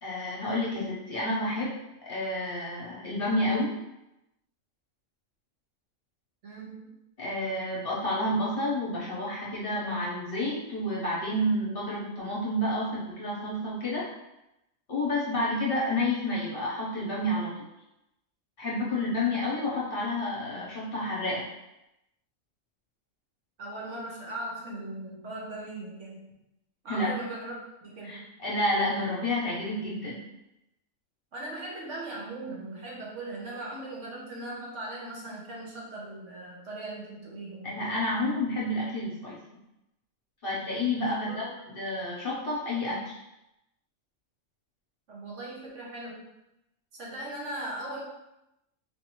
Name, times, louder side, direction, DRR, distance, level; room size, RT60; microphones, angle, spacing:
voice 1, 0.0-1.7 2.1-3.7 7.2-14.0 14.9-17.5 18.6-21.5 26.9-27.1 28.0-30.2 37.6-39.4 40.4-43.2, left 1 dB, 45° left, -6 dB, 1.1 m, -30 dB
voice 2, 6.4-7.0 23.6-26.3 26.8-28.3 31.3-37.9 41.0-41.4 45.1-46.3 47.0-48.0, right 2 dB, 65° right, -4 dB, 1.2 m, -39 dB
4.3 x 2.6 x 3.0 m, 0.89 s
omnidirectional pair, 1.4 m